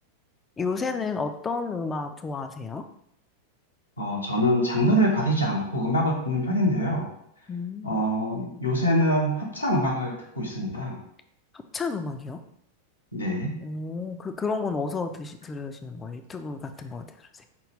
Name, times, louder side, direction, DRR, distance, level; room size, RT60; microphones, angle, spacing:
voice 1, 0.6-2.9 7.5-8.0 11.7-12.4 13.6-17.4, left 4 dB, 20° left, 8 dB, 0.3 m, -32 dB
voice 2, 4.0-7.1 7.8-11.0 13.1-13.6, equal, 80° left, -2 dB, 0.9 m, -24 dB
5.2 x 2.3 x 3.2 m, 0.73 s
figure-of-eight pair, 90°, 0 cm